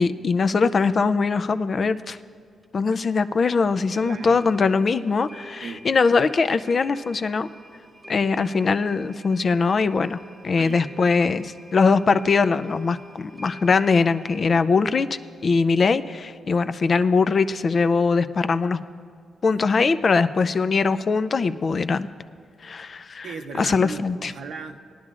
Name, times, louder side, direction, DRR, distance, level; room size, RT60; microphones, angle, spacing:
voice 1, 0.0-2.2 2.7-7.5 8.1-10.2 10.4-15.1 15.4-18.8 19.4-22.1 22.6-23.3 23.6-24.3, left 4 dB, 40° left, 12 dB, 0.4 m, -21 dB
sound 1, 2.6-2.7 2.9-3.0 3.4-3.5 3.9-14.6, equal, 15° right, 1.1 m, -47 dB
voice 2, 4.0-4.5 5.6-5.9 10.6-10.9 19.5-19.6 20.0-20.5 23.2-24.8, right 5 dB, 75° right, 6 dB, 0.7 m, -37 dB
20.0 x 10.5 x 2.4 m, 2.2 s
cardioid pair, 110°, 0 cm